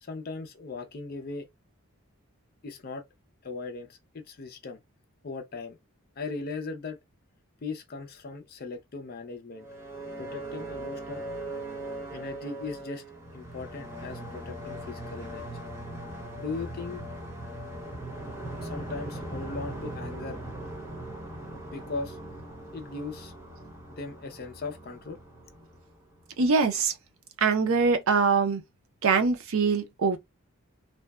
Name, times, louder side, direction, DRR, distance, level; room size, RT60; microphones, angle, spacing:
voice 1, 0.0-1.5 2.6-3.0 3.4-4.8 5.2-5.8 6.2-7.0 7.6-9.7 10.2-11.2 12.1-13.0 13.3-15.5 16.4-17.0 18.6-20.4 21.6-22.2 22.7-23.3 23.9-25.2, left 3 dB, 45° left, 0.5 m, -38 dB
sound 1, 9.5-26.4, right 1 dB, 10° right, 0.5 m, -40 dB
voice 2, 26.4-26.9 27.4-28.6 29.0-30.2, right 5 dB, 70° right, 0.5 m, -23 dB
2.6 x 2.1 x 2.2 m
head